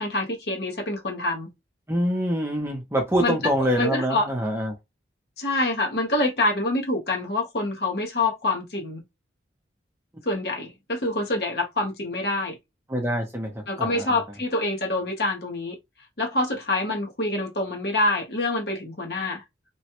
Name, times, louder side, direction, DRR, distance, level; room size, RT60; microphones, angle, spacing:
voice 1, 0.0-1.5 3.2-3.5 3.8-4.3 5.4-9.0 10.2-12.6 13.7-15.8 16.2-19.4, left 2 dB, 60° left, 1.0 m, -26 dB
voice 2, 1.9-4.7 12.9-14.2, equal, 15° right, 0.7 m, -25 dB
3.0 x 2.3 x 2.9 m
head